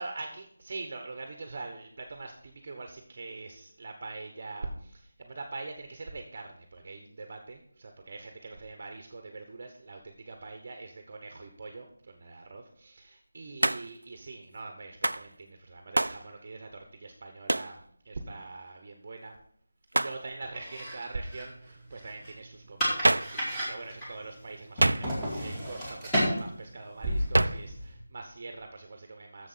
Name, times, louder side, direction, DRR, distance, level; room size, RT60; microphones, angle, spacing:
voice 1, 0.0-19.4 19.9-29.5, right 3 dB, 40° right, 5 dB, 1.0 m, -43 dB
Hands, 13.6-14.0 15.0-15.3 15.9-16.2 17.5-17.7 19.9-20.2 23.0-23.4 24.8-25.4 27.3-27.7, right 2 dB, 85° right, 0.4 m, -26 dB
sound 1, 20.5-27.9, equal, 5° left, 2.3 m, -34 dB
7.3 x 7.1 x 5.6 m, 0.67 s
figure-of-eight pair, 170°, 0 cm